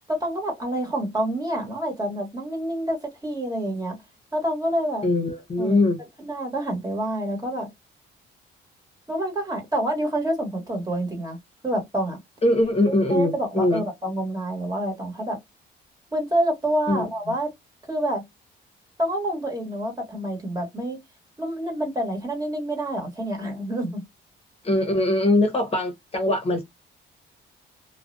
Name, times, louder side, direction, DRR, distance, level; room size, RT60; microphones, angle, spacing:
voice 1, 0.1-4.0 4.3-5.1 5.6-5.8 6.2-7.7 9.1-12.2 12.9-15.4 16.1-17.5 17.9-18.3 19.0-21.0 21.4-24.0, right 1 dB, 20° right, 1.2 m, -27 dB
voice 2, 5.0-6.0 12.4-13.8 16.9-17.4 24.6-26.6, left 1 dB, 30° left, 0.8 m, -22 dB
2.4 x 2.1 x 2.5 m
cardioid pair, 90°, 20 cm